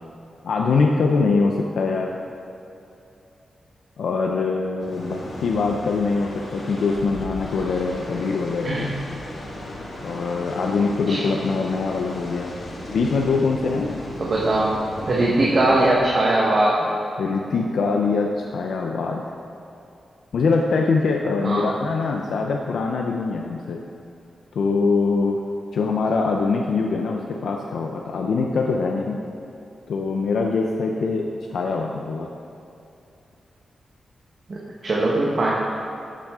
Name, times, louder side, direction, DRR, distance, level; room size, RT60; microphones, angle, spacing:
voice 1, 0.4-2.2 4.0-8.9 10.0-12.5 12.9-14.0 17.2-19.2 20.3-23.8 24.5-25.4 25.7-29.2 29.9-32.3, left 4 dB, 75° left, 1 dB, 0.6 m, -23 dB
sound 1, 4.8-15.9, left 1 dB, 55° left, 1.9 m, -36 dB
voice 2, 14.2-14.7 15.1-16.9 21.4-21.7 34.5-35.5, right 2 dB, 40° right, -5 dB, 1.2 m, -20 dB
12.0 x 7.5 x 3.7 m, 2.8 s
wide cardioid pair, 145°, 0 cm